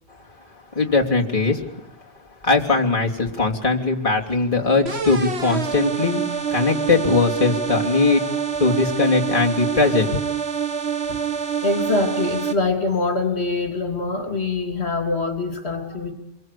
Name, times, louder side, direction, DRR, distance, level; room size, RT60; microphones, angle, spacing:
voice 1, 0.7-1.6 2.4-8.3 8.6-10.1, left 3 dB, 25° left, -2 dB, 3.2 m, -20 dB
sound 1, 4.9-12.5, right 7 dB, 55° right, 2.1 m, -26 dB
voice 2, 8.2-8.8 11.1-11.2 11.6-16.1, left 3 dB, 55° left, 6 dB, 3.1 m, -24 dB
27.5 x 23.0 x 8.4 m, 0.84 s
omnidirectional pair, 1.3 m